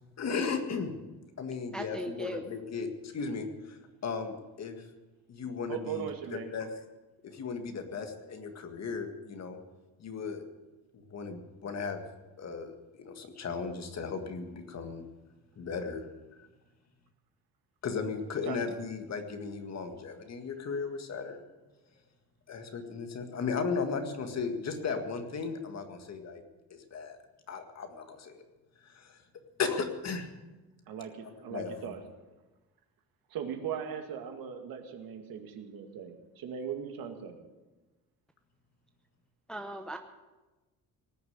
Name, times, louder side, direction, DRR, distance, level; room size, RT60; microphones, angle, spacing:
voice 1, 0.2-0.9 1.4-4.9 5.3-6.8 7.2-9.6 10.0-10.5 10.9-12.0 12.4-15.0 15.6-16.1 17.8-21.4 22.5-26.4 26.7-27.2 27.5-28.4 28.8-29.2 29.6-30.3 31.5-31.9, left 5 dB, 45° left, 6 dB, 1.9 m, -36 dB
voice 2, 1.7-2.4 39.5-40.0, equal, ahead, 4 dB, 0.8 m, -38 dB
voice 3, 5.7-6.5 18.4-18.6 30.9-32.0 33.3-37.4, right 8 dB, 70° right, 5 dB, 2.2 m, -39 dB
19.0 x 6.8 x 9.5 m, 1.2 s
cardioid pair, 125°, 36 cm